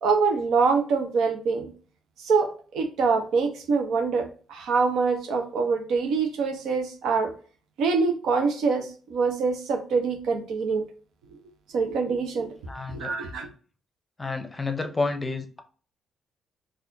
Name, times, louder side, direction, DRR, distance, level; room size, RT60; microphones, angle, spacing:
voice 1, 0.0-1.7 2.2-7.3 7.8-10.9 11.7-12.5 12.9-13.5, right 4 dB, 80° right, 0.8 m, -25 dB
voice 2, 12.7-13.1 14.2-15.6, left 3 dB, 20° left, 0.6 m, -30 dB
4.2 x 2.5 x 2.6 m
cardioid pair, 90°, 0 cm